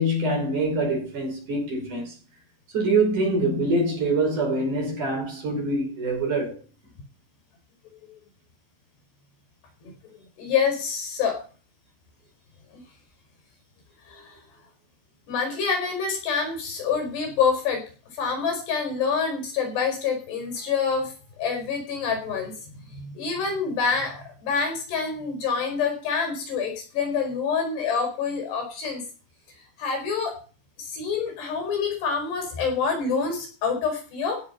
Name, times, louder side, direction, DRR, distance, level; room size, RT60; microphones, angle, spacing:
voice 1, 0.0-2.1 2.7-6.6, right 2 dB, 45° right, 6.7 m, -24 dB
voice 2, 10.4-11.4 12.7-12.8 14.1-14.4 15.3-17.8 18.1-22.5 22.9-29.0 29.8-30.4 30.8-34.4, left 5 dB, 75° left, 7.1 m, -27 dB
16.0 x 7.4 x 5.7 m
omnidirectional pair, 4.8 m